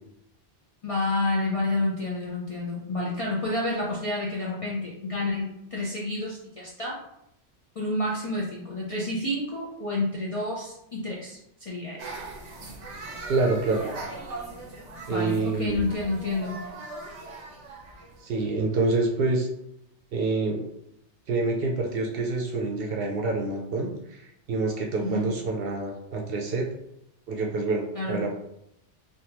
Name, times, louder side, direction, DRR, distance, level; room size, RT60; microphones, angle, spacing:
voice 1, 0.8-7.0 7.8-12.1 15.0-16.6 25.0-25.3 27.9-28.2, left 2 dB, 45° left, -5 dB, 0.4 m, -29 dB
sound 1, 12.0-18.9, right 2 dB, 90° right, 1.1 m, -40 dB
voice 2, 13.3-13.9 15.1-15.8 18.2-19.5 20.1-20.7 21.3-26.7 27.3-28.3, right 3 dB, 60° right, 0 dB, 0.7 m, -27 dB
3.4 x 2.2 x 2.8 m, 0.79 s
omnidirectional pair, 1.2 m